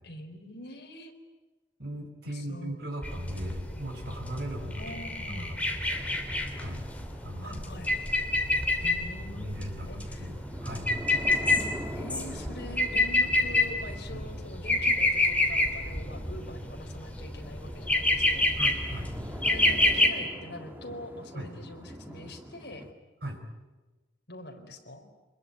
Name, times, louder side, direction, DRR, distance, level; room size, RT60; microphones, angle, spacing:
voice 1, 0.0-1.1 2.2-2.8 4.8-5.6 7.4-7.9 8.8-10.3 11.9-18.6 19.4-22.9 24.3-25.1, left 1 dB, 60° left, 3 dB, 4.0 m, -44 dB
voice 2, 1.8-5.0 5.3-6.2 6.5-6.8 7.2-7.6 9.2-10.9 14.1-14.2 18.6-19.1 21.3-21.5 23.2-23.4, right 1 dB, 55° right, 4 dB, 4.7 m, -38 dB
sound 1, 3.0-20.1, left 2 dB, 5° left, 2.7 m, -28 dB
sound 2, 5.9-22.9, equal, 10° right, 1.8 m, -45 dB
25.5 x 21.5 x 9.6 m, 1.2 s
head